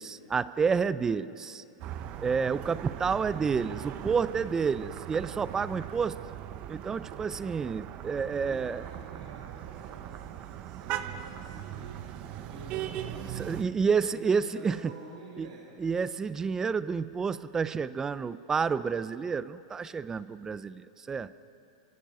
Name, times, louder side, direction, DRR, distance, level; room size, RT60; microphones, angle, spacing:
voice 1, 0.0-1.6 2.2-6.2 6.7-8.8 13.4-14.9 15.4-15.5 15.8-21.3, right 5 dB, 20° right, 16 dB, 0.7 m, -29 dB
sound 1, 1.8-13.6, right 11 dB, 45° right, 1.1 m, -40 dB
voice 2, 8.4-13.7 14.0-15.8, right 3 dB, 90° right, -3 dB, 4.4 m, -48 dB
29.0 x 25.0 x 5.7 m, 2.7 s
hypercardioid pair, 120°, 3 cm